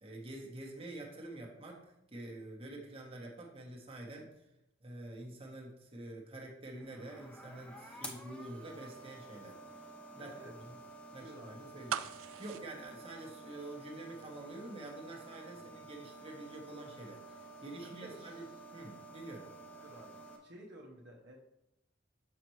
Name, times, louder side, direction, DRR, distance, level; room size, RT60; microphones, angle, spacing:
voice 1, 0.0-1.8 2.1-4.4 4.8-9.6 10.1-10.3 10.7-10.8 11.1-12.0 12.4-18.5 18.7-19.5, right 2 dB, 30° right, -1 dB, 1.1 m, -47 dB
sound 1, 6.8-20.4, right 2 dB, 5° left, 0.7 m, -51 dB
voice 2, 10.1-10.5 11.2-11.6 11.9-12.0 15.5-15.8 17.8-18.4 19.8-21.4, right 1 dB, 60° right, -1 dB, 0.9 m, -53 dB
sound 2, 11.9-13.9 14.2-14.3, right 10 dB, 90° right, 0.3 m, -40 dB
6.6 x 5.7 x 3.1 m, 0.85 s
head